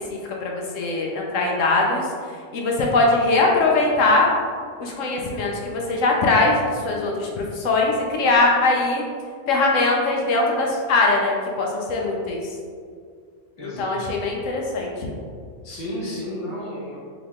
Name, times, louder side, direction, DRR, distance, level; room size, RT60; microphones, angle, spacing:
voice 1, 0.4-2.1 2.5-4.3 4.8-9.0 9.5-12.4 13.6-14.9, left 3 dB, 80° left, -1 dB, 1.0 m, -21 dB
voice 2, 13.6-14.0 15.6-17.0, left 1 dB, 30° left, -6 dB, 0.9 m, -32 dB
4.0 x 2.9 x 3.5 m, 2.1 s
omnidirectional pair, 1.3 m